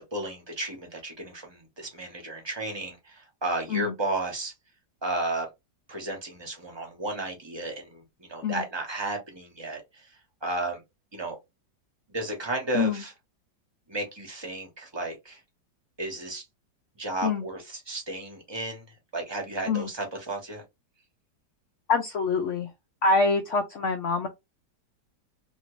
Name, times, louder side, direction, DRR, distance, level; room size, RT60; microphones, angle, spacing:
voice 1, 0.1-4.5 5.0-5.5 5.9-10.1 10.4-10.8 11.1-11.4 12.1-13.1 13.9-15.4 16.0-16.4 17.0-18.9 19.1-20.6, right 2 dB, 20° right, 0.7 m, -33 dB
voice 2, 21.9-22.7 23.0-24.3, left 4 dB, 85° left, 0.6 m, -25 dB
2.9 x 2.6 x 3.0 m
omnidirectional pair, 1.9 m